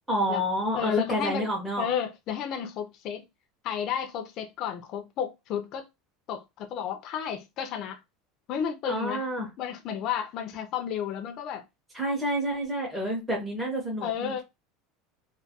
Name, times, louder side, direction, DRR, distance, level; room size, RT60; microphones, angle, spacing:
voice 1, 0.1-1.9 8.9-9.5 11.9-14.4, equal, 5° right, 0.6 m, -29 dB
voice 2, 0.8-1.5 1.8-3.2 3.6-5.9 6.3-8.0 8.5-11.6 14.0-14.4, left 8 dB, 40° left, 0.3 m, -32 dB
2.2 x 2.2 x 2.7 m
cardioid pair, 165°, 0 cm